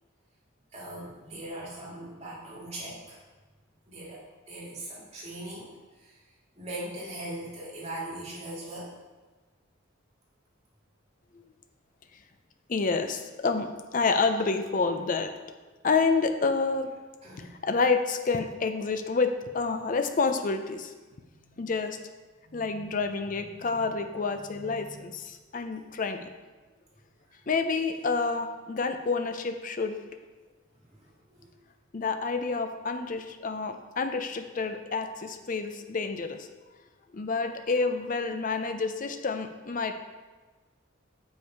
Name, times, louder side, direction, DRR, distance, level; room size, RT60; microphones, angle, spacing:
voice 1, 0.7-3.2 3.9-6.2 6.5-8.9 17.2-17.6 21.3-21.7 22.4-24.0 24.3-25.0 27.3-27.4 30.8-31.5, right 1 dB, 30° right, -6 dB, 2.2 m, -41 dB
voice 2, 12.7-15.3 15.8-16.9 17.4-20.9 21.6-22.0 22.5-26.3 27.5-30.0 31.9-36.5 37.1-39.9, left 4 dB, 40° left, 7 dB, 0.5 m, -28 dB
6.9 x 5.4 x 4.5 m, 1.3 s
head